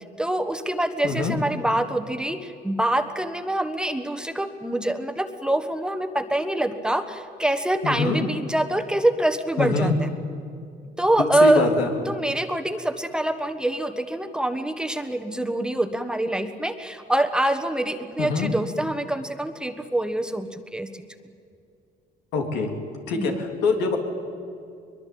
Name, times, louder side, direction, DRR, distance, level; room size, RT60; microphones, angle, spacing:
voice 1, 0.2-10.1 11.0-11.7 12.1-21.1 23.1-23.3, right 1 dB, 5° right, 8 dB, 1.4 m, -25 dB
voice 2, 1.0-1.4 7.8-8.3 9.6-9.9 11.4-11.9 18.2-18.5 22.3-22.7 23.1-24.0, left 4 dB, 90° left, 3 dB, 3.5 m, -24 dB
22.5 x 22.0 x 8.7 m, 2.4 s
cardioid pair, 110°, 17 cm